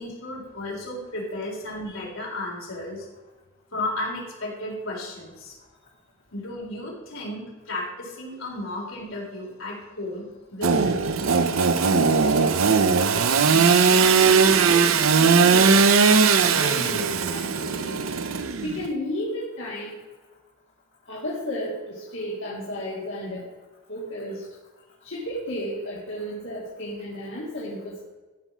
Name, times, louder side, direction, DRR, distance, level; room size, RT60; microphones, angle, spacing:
voice 1, 0.0-3.1 3.7-5.5 6.3-11.2, left 1 dB, 80° left, -3 dB, 3.9 m, -34 dB
Engine / Sawing, 10.6-18.9, right 5 dB, 80° right, 0.7 m, -19 dB
voice 2, 12.0-12.9 13.5-15.8 16.4-18.0 18.6-20.0 21.1-23.4 23.9-24.5 25.0-28.0, equal, 65° left, -6 dB, 2.3 m, -33 dB
14.0 x 5.5 x 6.1 m, 1.2 s
head